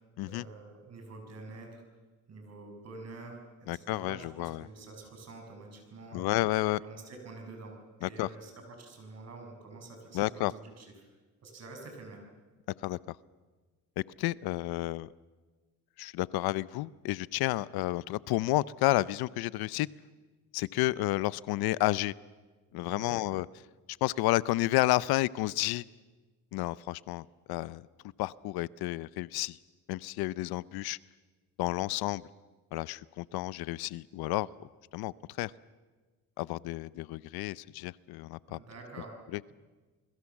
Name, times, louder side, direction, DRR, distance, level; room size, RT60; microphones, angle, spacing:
voice 1, 0.2-1.8 2.3-6.3 6.8-7.7 8.0-10.9 11.4-12.2 22.9-23.2 38.5-39.2, right 3 dB, 45° right, 3 dB, 7.0 m, -47 dB
voice 2, 3.7-4.7 6.1-6.8 8.0-8.3 10.1-10.5 12.8-13.2 14.2-15.1 16.0-19.9 20.5-22.1 22.7-23.5 24.0-25.8 26.5-27.9 28.2-29.6 29.9-31.0 31.6-32.2 32.7-34.5 34.9-35.5 36.4-38.6 39.3-39.4, left 18 dB, 85° left, 20 dB, 0.7 m, -31 dB
28.5 x 21.5 x 7.2 m, 1.3 s
cardioid pair, 135°, 36 cm